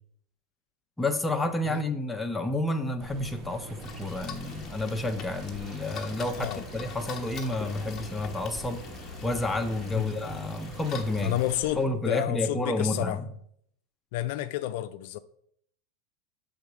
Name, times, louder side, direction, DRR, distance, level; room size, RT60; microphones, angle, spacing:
voice 1, 1.0-8.8 9.2-11.4 11.8-13.3, left 2 dB, 5° left, 0.7 m, -30 dB
sound 1, 3.0-11.9, right 2 dB, 35° right, 1.0 m, -44 dB
sound 2, 3.8-11.6, left 7 dB, 30° left, 1.1 m, -43 dB
voice 2, 11.2-11.8 12.1-13.2 14.1-15.2, left 15 dB, 65° left, 0.3 m, -30 dB
7.1 x 3.8 x 4.9 m
supercardioid pair, 135°, 0 cm